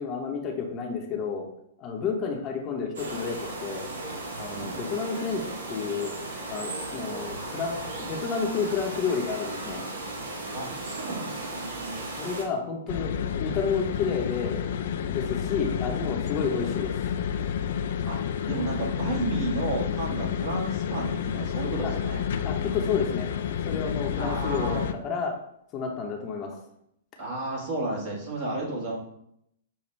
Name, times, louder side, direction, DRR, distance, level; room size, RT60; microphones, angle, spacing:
voice 1, 0.0-1.5 1.8-3.9 4.4-5.4 5.7-6.1 6.5-9.8 12.2-14.6 15.0-17.0 21.8-21.9 22.4-23.3 23.7-25.3 25.7-26.5, left 5 dB, 30° left, 1 dB, 0.8 m, -30 dB
sound 1, 3.0-12.5, right 2 dB, 70° right, 1.1 m, -36 dB
voice 2, 10.5-11.6 16.5-16.6 18.1-18.2 18.5-22.2 24.2-24.9 27.2-29.0, right 2 dB, 50° right, -2 dB, 1.6 m, -32 dB
sound 2, 12.9-24.9, left 8 dB, 60° left, 0.3 m, -30 dB
6.7 x 2.3 x 3.2 m, 0.75 s
figure-of-eight pair, 110°, 0 cm